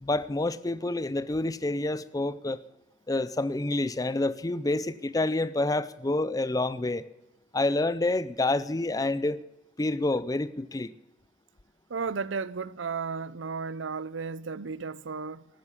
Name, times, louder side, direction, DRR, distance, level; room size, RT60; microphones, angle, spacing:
voice 1, 0.0-2.6 3.1-7.0 7.5-9.4 9.8-10.9, left 2 dB, 20° left, 0.5 m, -28 dB
voice 2, 11.9-15.5, right 5 dB, 80° right, 0.6 m, -34 dB
13.0 x 9.6 x 8.2 m
head